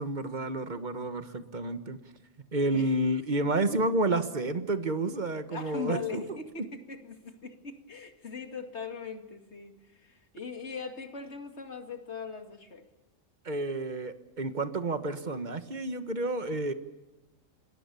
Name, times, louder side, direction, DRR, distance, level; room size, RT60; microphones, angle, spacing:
voice 1, 0.0-2.0 2.5-6.2 6.6-6.7 13.4-16.7, right 2 dB, 35° right, 10 dB, 1.5 m, -30 dB
voice 2, 5.5-12.8, left 5 dB, 60° left, 6 dB, 2.6 m, -40 dB
27.0 x 21.0 x 7.0 m, 1.1 s
omnidirectional pair, 1.3 m